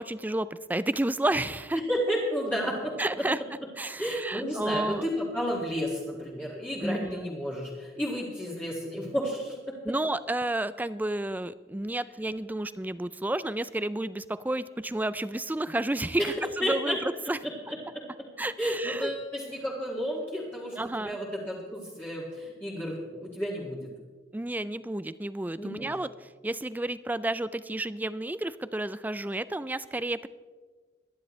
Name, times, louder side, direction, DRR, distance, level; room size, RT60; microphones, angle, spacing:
voice 1, 0.0-1.8 3.0-3.4 3.8-5.0 6.8-7.3 9.8-17.4 18.4-19.1 20.8-21.2 24.3-30.3, right 1 dB, 10° right, 15 dB, 0.4 m, -31 dB
voice 2, 1.9-2.9 4.0-9.9 16.6-17.0 17.7-18.0 18.6-23.9 25.6-25.9, equal, 10° left, -7 dB, 2.2 m, -32 dB
23.5 x 10.5 x 3.2 m, 1.4 s
head